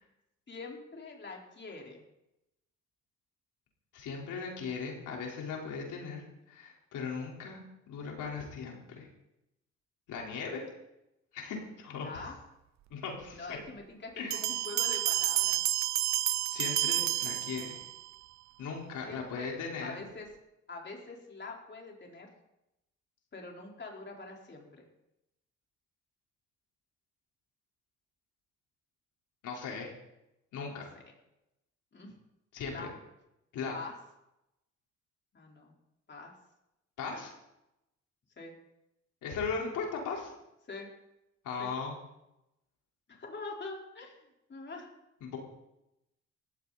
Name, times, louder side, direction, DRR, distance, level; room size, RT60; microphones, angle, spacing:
voice 1, 0.5-2.0 11.9-12.4 13.3-15.6 17.7-17.8 19.1-19.5 19.8-20.3 20.7-22.3 23.3-24.9 30.6-30.8 31.9-32.1 32.7-32.9 33.7-33.9 35.3-35.7 36.1-36.4 38.4-38.5 40.7-40.9 41.6-41.7 43.1-44.9, left 3 dB, 35° left, -1 dB, 4.6 m, -44 dB
voice 2, 3.9-7.6 7.9-9.1 10.1-10.6 11.3-12.1 12.9-13.5 14.2-14.4 16.5-17.7 18.6-20.0 29.4-29.9 30.5-30.9 32.5-32.9 33.5-33.8 37.0-37.3 39.2-40.3 41.4-42.0 45.2-45.4, left 5 dB, 85° left, -1 dB, 4.6 m, -38 dB
Bell, 14.3-18.1, right 14 dB, 65° right, 0.5 m, -30 dB
19.0 x 15.5 x 4.3 m, 0.89 s
cardioid pair, 90°, 30 cm